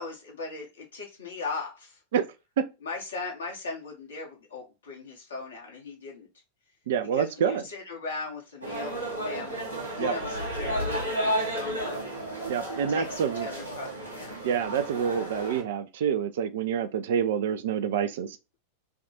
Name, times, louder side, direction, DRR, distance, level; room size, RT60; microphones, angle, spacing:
voice 1, 0.0-2.0 2.8-6.3 7.1-9.6 9.9-12.0 12.9-14.4, left 4 dB, 70° left, 1.4 m, -38 dB
voice 2, 6.9-7.6 10.0-10.1 12.5-13.5 14.4-18.4, right 8 dB, 55° right, 0.5 m, -27 dB
sound 1, 8.6-15.6, right 1 dB, 90° left, 1.4 m, -32 dB
3.5 x 2.4 x 4.0 m
figure-of-eight pair, 90°, 0 cm